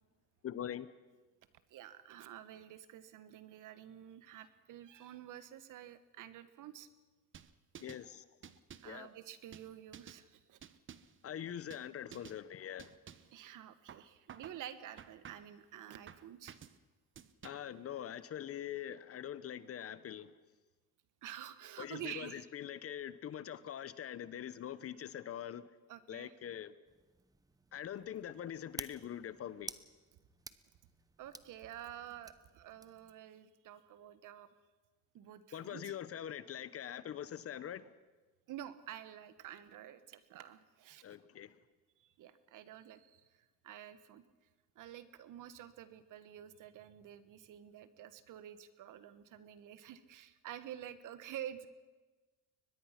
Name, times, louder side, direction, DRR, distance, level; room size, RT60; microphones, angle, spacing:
voice 1, 0.4-0.9 7.8-8.2 8.8-9.1 11.2-12.9 17.4-20.3 21.8-25.6 26.1-26.7 27.7-29.7 35.5-37.9 41.0-41.5, left 10 dB, 40° left, 16 dB, 0.9 m, -43 dB
voice 2, 1.7-6.9 8.8-10.6 13.3-16.5 21.2-22.5 25.9-26.3 31.2-34.5 35.1-35.9 38.5-41.2 42.0-43.2 43.6-44.2 44.7-51.7, right 11 dB, 60° right, 13 dB, 1.4 m, -49 dB
sound 1, 7.3-8.1 8.4-9.0 9.5-10.2 10.6-11.2 11.7-11.9 12.1-12.4 12.8-13.4 13.9-14.6 15.0-15.6 16.1-16.8 17.2-17.8, right 8 dB, 35° right, 1.0 m, -53 dB
sound 2, 26.8-33.1, right 3 dB, 10° right, 0.8 m, -52 dB
23.0 x 20.0 x 5.9 m, 1.3 s
cardioid pair, 105°, 36 cm